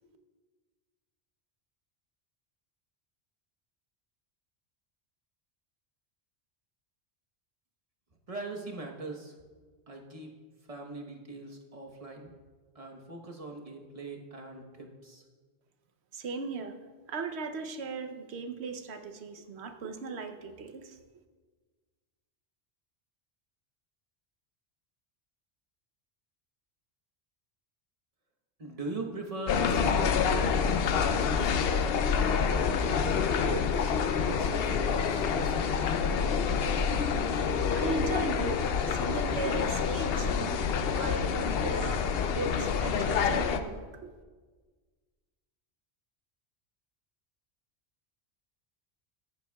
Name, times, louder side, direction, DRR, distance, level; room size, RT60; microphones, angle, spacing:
voice 1, 8.3-9.3 9.9-10.3 10.7-12.3 12.7-15.2 28.6-32.0 32.8-36.0, right 2 dB, 35° right, 1 dB, 1.1 m, -41 dB
voice 2, 16.1-16.8 17.1-21.0 37.7-40.6 40.9-42.0 42.3-44.1, right 4 dB, 80° right, 7 dB, 1.0 m, -37 dB
sound 1, 29.5-43.6, left 6 dB, 65° left, 0.8 m, -27 dB
14.5 x 10.0 x 2.3 m, 1.4 s
omnidirectional pair, 1.1 m